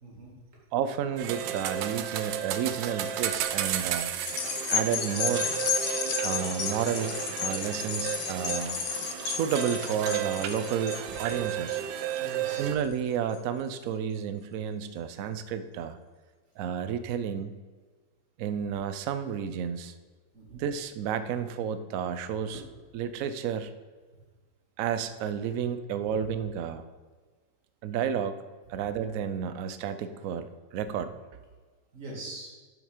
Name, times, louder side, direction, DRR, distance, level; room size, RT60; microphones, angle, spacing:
voice 1, 0.0-0.3 8.9-9.0 12.2-12.7 20.3-20.6 22.5-22.6 26.1-26.2 31.9-32.5, right 2 dB, 45° right, -3 dB, 2.6 m, -43 dB
voice 2, 0.7-4.2 4.7-5.5 6.2-7.1 7.4-8.8 9.2-11.8 12.6-16.0 16.6-17.5 18.4-20.0 20.5-22.6 22.9-23.7 24.8-26.8 27.8-28.4 28.7-31.2, right 8 dB, 70° right, 11 dB, 0.8 m, -31 dB
sound 1, 1.2-12.7, right 10 dB, 85° right, 1.3 m, -33 dB
sound 2, 4.2-12.9 13.3-13.4, left 7 dB, 85° left, 1.6 m, -33 dB
7.2 x 6.9 x 5.0 m, 1.4 s
omnidirectional pair, 1.9 m